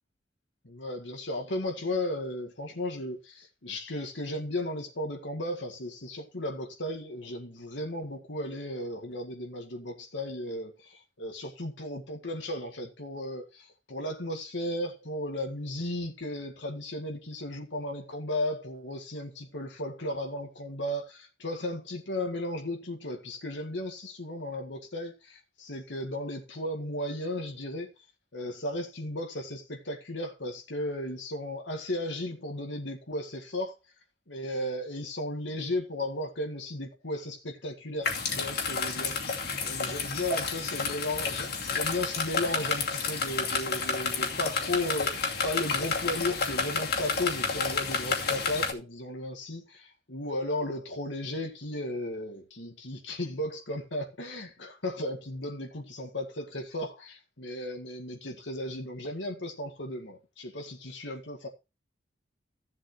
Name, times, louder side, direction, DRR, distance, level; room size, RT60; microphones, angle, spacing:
voice 1, 0.6-27.9 28.3-33.8 34.3-39.1 39.6-61.5, left 1 dB, 75° left, 1.8 m, -35 dB
sound 1, 38.0-48.7, left 4 dB, 55° left, 2.6 m, -30 dB
15.5 x 7.7 x 3.1 m
head